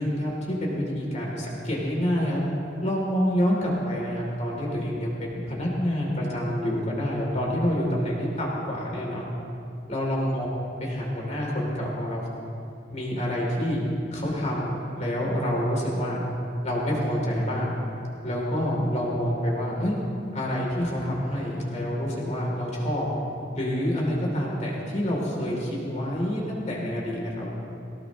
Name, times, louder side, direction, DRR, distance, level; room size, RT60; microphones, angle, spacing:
voice 1, 0.0-2.4 2.8-9.2 9.9-10.4 10.8-12.3 12.9-13.8 14.1-16.2 16.6-17.8 18.2-20.0 20.3-23.0 23.5-27.5, equal, 40° left, -3 dB, 3.3 m, -27 dB
19.0 x 18.0 x 3.2 m, 2.6 s
head